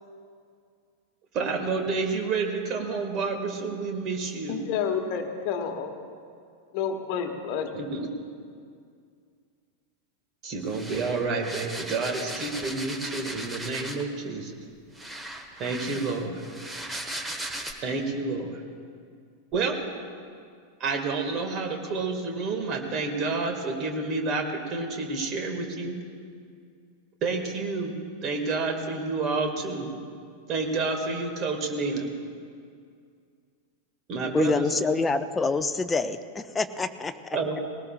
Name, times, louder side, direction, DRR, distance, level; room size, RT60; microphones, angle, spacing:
voice 1, 1.3-4.6 7.7-8.3 10.4-14.5 15.6-16.4 17.8-18.6 19.5-19.7 20.8-26.0 27.2-29.9 30.5-32.1 34.1-34.8 37.3-37.6, right 4 dB, 35° right, 4 dB, 1.9 m, -29 dB
voice 2, 4.5-6.1 6.7-7.7, left 7 dB, 45° left, 6 dB, 1.2 m, -30 dB
sound 1, 10.7-14.2 14.9-17.7, right 1 dB, 10° right, 1.2 m, -37 dB
voice 3, 34.3-37.1, left 4 dB, 15° left, 9 dB, 0.6 m, -26 dB
20.5 x 18.0 x 2.4 m, 2.2 s
figure-of-eight pair, 90°, 0 cm